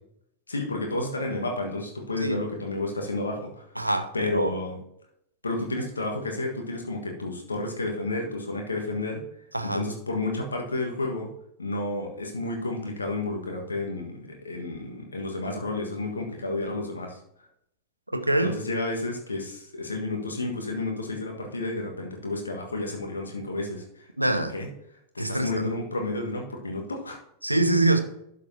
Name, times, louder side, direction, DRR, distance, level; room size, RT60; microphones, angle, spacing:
voice 1, 0.5-3.6 4.1-4.8 5.4-9.2 9.6-11.3 11.6-17.2 18.4-24.1 24.5-24.7 25.1-27.2, left 2 dB, 75° left, 1.5 m, -31 dB
voice 2, 3.8-4.5 9.5-9.8 18.1-18.6 24.2-24.5 25.2-25.7 27.4-28.0, right 2 dB, 85° right, 0.8 m, -24 dB
11.5 x 7.2 x 2.8 m
figure-of-eight pair, 90°, 0 cm